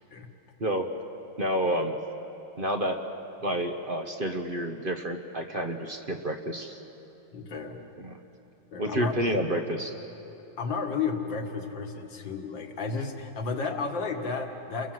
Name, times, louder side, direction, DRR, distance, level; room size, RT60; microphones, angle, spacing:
voice 1, 1.4-2.0 2.6-3.0 3.4-6.8 8.0-8.2 8.8-9.9, right 1 dB, 35° right, 5 dB, 1.0 m, -29 dB
voice 2, 7.3-7.8 8.7-9.4 10.6-14.9, left 4 dB, 60° left, 4 dB, 2.4 m, -32 dB
29.5 x 22.5 x 7.7 m, 3.0 s
omnidirectional pair, 2.3 m